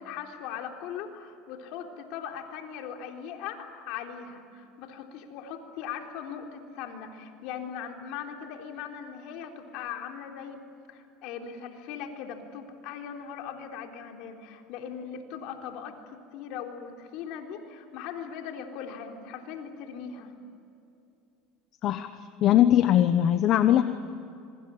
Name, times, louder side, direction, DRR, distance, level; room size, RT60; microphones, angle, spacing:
voice 1, 0.0-10.6 10.9-15.9 16.3-20.3, left 8 dB, 65° left, 3 dB, 3.8 m, -39 dB
voice 2, 22.4-23.8, left 11 dB, 50° left, 10 dB, 1.1 m, -20 dB
26.0 x 23.5 x 8.7 m, 2.6 s
supercardioid pair, 115°, 0 cm